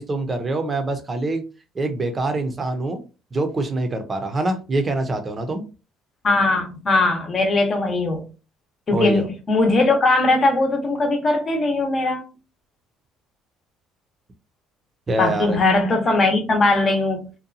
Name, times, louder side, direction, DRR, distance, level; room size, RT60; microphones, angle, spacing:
voice 1, 0.0-1.4 1.8-3.0 3.3-5.6 8.9-9.3 15.1-15.6, right 2 dB, 30° right, 0.6 m, -24 dB
voice 2, 6.2-8.3 8.9-12.2 15.2-17.3, left 2 dB, 40° left, 0.8 m, -20 dB
2.7 x 2.2 x 2.4 m
supercardioid pair, 90°, 0 cm